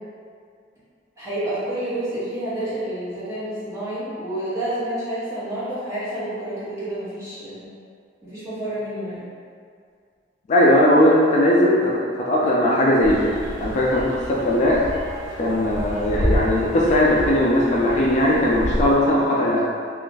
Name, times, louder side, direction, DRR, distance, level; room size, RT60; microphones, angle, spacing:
voice 1, 1.2-7.6 8.3-9.3, right 1 dB, 15° right, -13 dB, 1.2 m, -29 dB
voice 2, 10.5-14.9 15.4-19.6, left 1 dB, 40° left, -4 dB, 0.3 m, -19 dB
sound 1, 13.0-18.9, equal, 80° right, 1.2 m, -29 dB
2.4 x 2.4 x 3.7 m, 2.2 s
head